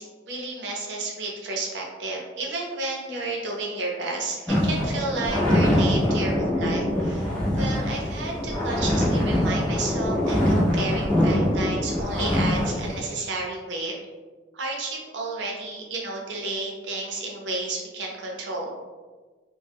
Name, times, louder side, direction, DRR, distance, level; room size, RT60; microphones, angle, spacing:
voice 1, 0.0-13.9 14.5-18.9, right 2 dB, 75° right, -1 dB, 0.6 m, -32 dB
sound 1, 4.5-13.0, left 1 dB, 5° left, 0.5 m, -23 dB
2.0 x 2.0 x 3.3 m, 1.3 s
head